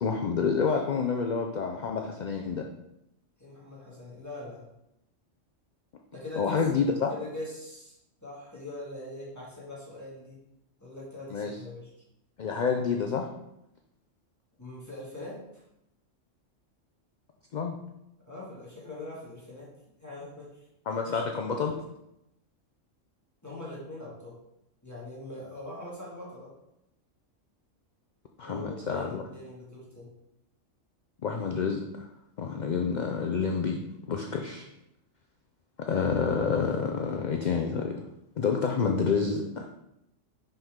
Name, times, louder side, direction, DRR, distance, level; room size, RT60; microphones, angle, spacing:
voice 1, 0.0-2.7 6.4-7.1 11.3-11.6 12.4-13.3 17.5-17.8 20.9-21.8 28.4-29.2 31.2-32.1 32.4-33.8 34.1-34.7 35.8-38.0 38.4-39.7, left 5 dB, 55° left, 3 dB, 0.5 m, -28 dB
voice 2, 3.4-4.7 6.1-6.6 7.1-8.0 8.2-10.4 10.8-11.9 14.6-15.6 18.3-19.7 20.0-20.5 21.1-21.2 23.4-24.4 24.8-26.5 28.4-30.1, left 2 dB, 15° left, -7 dB, 1.9 m, -42 dB
5.6 x 5.6 x 3.6 m, 0.84 s
omnidirectional pair, 1.3 m